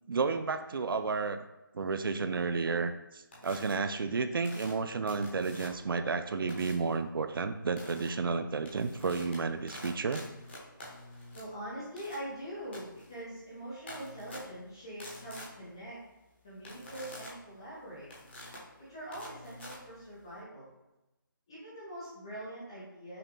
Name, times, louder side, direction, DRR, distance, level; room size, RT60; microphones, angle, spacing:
voice 1, 0.1-1.4 1.7-10.2, right 4 dB, 80° right, 9 dB, 0.4 m, -32 dB
sound 1, 3.3-3.7 4.4-5.9 6.5-6.9 7.8-8.1 8.5-20.4, left 1 dB, 30° left, 1.2 m, -48 dB
voice 2, 11.3-16.0 16.4-18.1 18.8-20.7 21.5-23.2, right 1 dB, 15° left, -9 dB, 0.6 m, -43 dB
5.6 x 2.5 x 3.5 m, 0.99 s
figure-of-eight pair, 175°, 12 cm